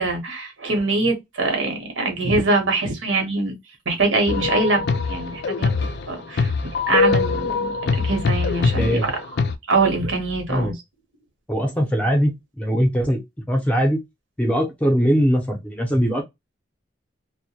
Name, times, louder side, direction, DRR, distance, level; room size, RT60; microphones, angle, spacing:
voice 1, 0.0-3.6 3.9-4.8 5.1-5.7 6.1-9.2 9.7-10.8, right 3 dB, 85° right, 0.9 m, -23 dB
sound 1, 4.3-9.5, left 4 dB, 55° left, 0.4 m, -23 dB
voice 2, 8.6-9.0 10.5-10.7 11.5-13.2 13.5-14.0 14.4-16.2, equal, 5° left, 0.5 m, -21 dB
2.1 x 2.1 x 2.7 m
head